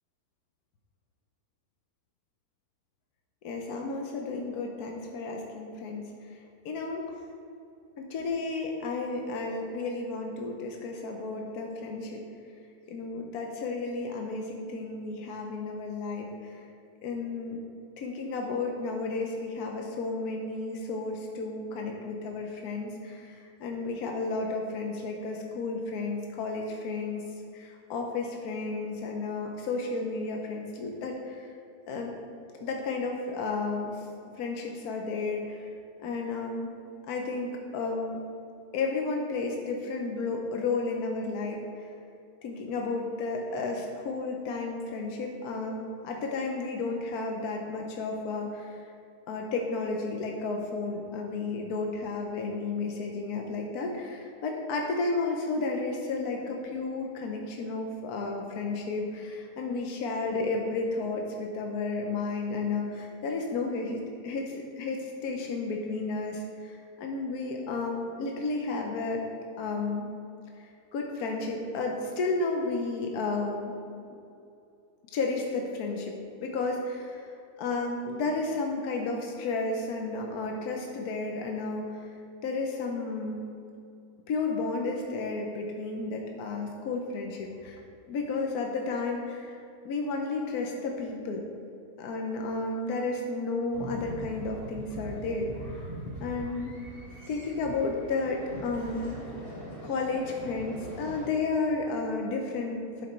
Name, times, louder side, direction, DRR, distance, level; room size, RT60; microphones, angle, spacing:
voice 1, 3.4-6.1 6.6-7.0 8.0-12.2 12.9-16.6 17.0-17.6 18.0-27.2 27.5-31.5 31.9-32.1 32.6-34.1 34.4-35.7 36.0-36.7 37.1-38.2 38.7-41.9 42.4-48.8 49.3-69.2 69.6-70.1 70.6-73.7 75.1-77.3 77.6-82.1 82.4-83.4 84.3-87.8 88.1-89.6 89.8-91.4 92.0-95.8 96.2-96.7 97.3-99.2 99.8-103.1, left 3 dB, 75° left, 1 dB, 1.3 m, -32 dB
sound 1, 93.7-101.3, right 1 dB, 35° left, 2.0 m, -41 dB
11.5 x 5.2 x 4.4 m, 2.6 s
omnidirectional pair, 1.7 m